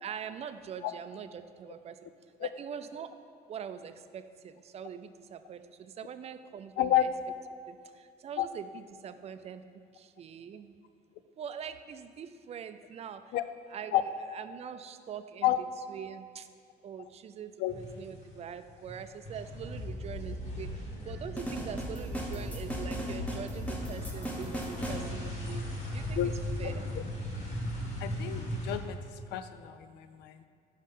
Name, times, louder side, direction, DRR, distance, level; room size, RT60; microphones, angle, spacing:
voice 1, 0.0-2.0 2.4-3.1 3.5-7.1 7.7-7.8 8.2-9.6 10.0-10.7 11.4-13.2 13.7-16.5 16.8-20.7 21.0-25.6 25.9-26.7, right 8 dB, 40° right, 10 dB, 0.4 m, -43 dB
voice 2, 6.8-7.1 8.4-8.5 13.3-13.4 13.9-14.0 15.4-15.6 17.6-17.7 26.2-26.3 28.0-29.0 29.3-30.4, left 12 dB, 80° left, 11 dB, 0.4 m, -29 dB
sound 1, 17.7-18.5 18.7-28.8, left 1 dB, 45° left, 1.7 m, -37 dB
sound 2, 21.4-25.1, right 1 dB, 10° left, 0.9 m, -38 dB
5.5 x 5.3 x 5.3 m, 2.2 s
cardioid pair, 110°, 17 cm